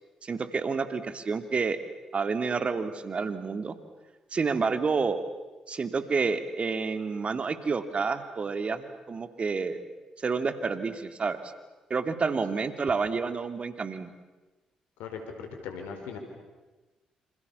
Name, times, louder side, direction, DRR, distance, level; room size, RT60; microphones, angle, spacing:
voice 1, 0.2-1.8 2.1-3.7 4.3-5.2 5.7-9.8 10.2-11.5 11.9-14.1, right 4 dB, 45° right, 10 dB, 2.7 m, -29 dB
voice 2, 15.0-16.2, left 6 dB, 80° left, 5 dB, 4.7 m, -39 dB
28.0 x 27.0 x 7.2 m, 1.2 s
hypercardioid pair, 45°, 3 cm